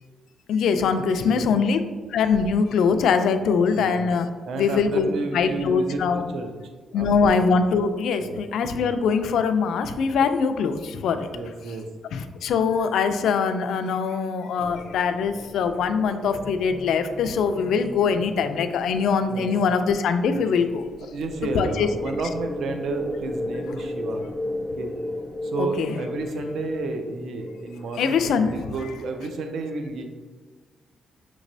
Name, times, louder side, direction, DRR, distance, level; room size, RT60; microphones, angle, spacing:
voice 1, 0.5-1.8 2.1-4.3 4.6-6.2 6.9-10.8 11.0-11.2 12.1-20.8 21.6-21.9 25.6-26.0 28.0-28.5, left 5 dB, 80° left, 8 dB, 0.3 m, -22 dB
voice 2, 1.2-1.7 3.8-4.0 4.5-6.5 6.9-7.3 8.2-8.4 11.3-11.9 18.2-18.3 19.3-19.5 20.3-20.5 21.0-24.2 24.8-24.9 25.4-30.0, right 3 dB, 65° right, 5 dB, 0.4 m, -31 dB
sound 1, 14.6-28.4, left 1 dB, 5° right, 0.5 m, -36 dB
5.9 x 3.0 x 2.6 m, 1.4 s
wide cardioid pair, 165°, 0 cm